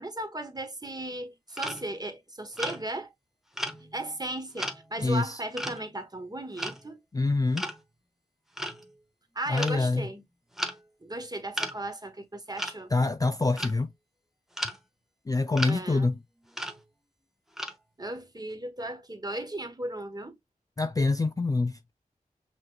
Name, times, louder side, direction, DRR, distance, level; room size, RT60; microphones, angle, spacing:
voice 1, 0.0-3.1 3.8-7.0 9.3-10.2 11.0-12.9 15.6-16.1 18.0-20.4, right 1 dB, 25° right, 1.1 m, -36 dB
sound 1, 1.6-1.9 2.5-2.9 3.5-4.2 4.6-5.0 5.6-5.9 6.5-6.8 7.6-7.8 8.6-8.9 9.6-9.8 10.1-10.2 10.5-10.8 11.5-11.8 12.6-12.7 13.3-13.8 14.6-14.8 15.5-15.8 16.5-16.8 17.6-17.7, equal, ahead, 0.9 m, -34 dB
voice 2, 5.0-5.4 7.1-7.7 9.5-10.1 12.9-13.9 15.3-16.2 20.8-21.8, left 3 dB, 25° left, 0.3 m, -26 dB
5.7 x 3.1 x 2.3 m
cardioid pair, 45°, 16 cm